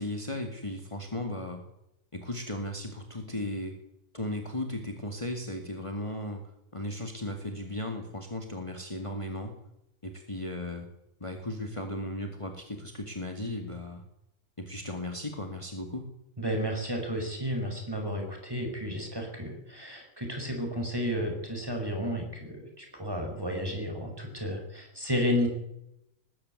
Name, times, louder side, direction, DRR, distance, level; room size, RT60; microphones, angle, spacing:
voice 1, 0.0-1.6 2.1-3.7 4.1-6.4 6.7-9.6 10.0-10.9 11.2-14.0 14.6-16.1, left 1 dB, 25° left, 4 dB, 2.3 m, -36 dB
voice 2, 16.4-25.5, equal, 15° right, 3 dB, 5.8 m, -32 dB
19.5 x 14.5 x 9.6 m, 0.85 s
omnidirectional pair, 1.4 m